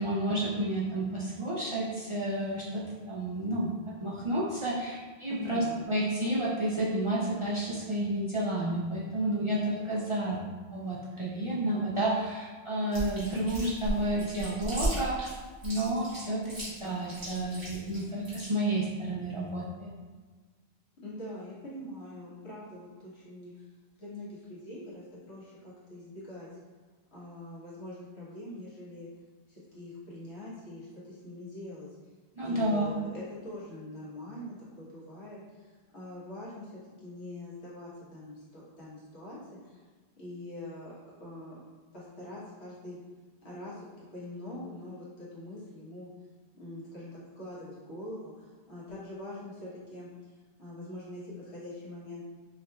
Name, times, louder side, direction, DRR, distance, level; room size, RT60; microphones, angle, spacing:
voice 1, 0.0-10.4 10.7-15.3 15.6-19.9 32.4-32.9, right 1 dB, 45° right, -6 dB, 0.4 m, -31 dB
voice 2, 5.3-5.9 21.0-23.6 24.0-26.5 27.1-29.1 29.5-31.9 32.4-35.7 35.9-36.7 37.0-39.8 40.2-41.6 41.9-43.0 43.4-46.1 46.5-50.1 50.6-52.2, left 1 dB, 90° left, -7 dB, 1.5 m, -43 dB
Chewing mastication, 12.9-18.5, right 1 dB, 85° right, 2.0 m, -35 dB
4.6 x 3.0 x 2.3 m, 1.4 s
omnidirectional pair, 1.1 m